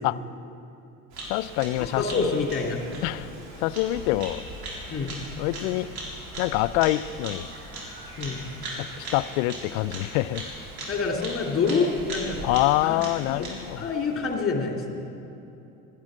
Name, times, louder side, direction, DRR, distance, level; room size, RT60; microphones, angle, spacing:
Bird vocalization bird call bird song, 1.1-14.4, right 1 dB, 60° right, 3.9 m, -39 dB
voice 1, 1.3-2.3 3.0-3.3 3.6-4.4 5.4-5.9 6.4-7.5 9.0-10.4 12.4-13.9, left 16 dB, 75° left, 17 dB, 0.5 m, -25 dB
voice 2, 2.0-2.8 4.9-5.1 8.2-8.5 10.9-12.4 12.8-13.0 13.3-13.5 13.8-15.2, left 4 dB, 30° left, 0 dB, 2.8 m, -27 dB
13.0 x 10.5 x 7.5 m, 2.9 s
hypercardioid pair, 75°, 41 cm